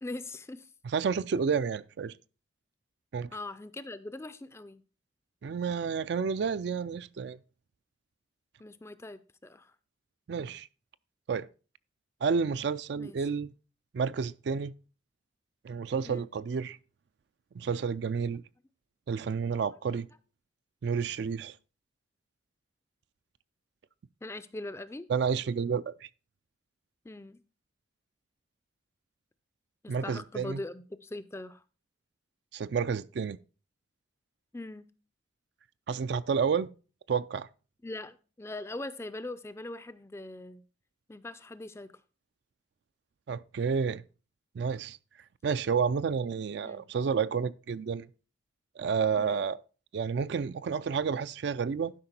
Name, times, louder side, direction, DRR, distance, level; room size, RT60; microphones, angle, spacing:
voice 1, 0.0-0.7 3.3-4.8 8.6-9.7 12.9-13.3 16.1-16.3 24.2-25.1 27.0-27.4 29.8-31.6 34.5-34.9 37.8-40.6 41.1-41.9 46.6-46.9 49.2-49.5, left 2 dB, 15° left, 0.4 m, -41 dB
voice 2, 0.9-2.1 3.1-3.3 5.4-7.4 10.3-10.7 11.3-11.5 12.2-13.5 13.9-14.7 15.6-16.8 17.5-18.4 19.1-20.1 20.8-21.5 25.1-26.1 29.9-30.6 32.5-33.4 35.9-36.7 37.1-37.5 43.3-44.0 44.5-45.0 45.4-48.1 48.8-49.6 49.9-51.9, right 6 dB, 60° right, 0.3 m, -30 dB
11.5 x 5.2 x 4.3 m
head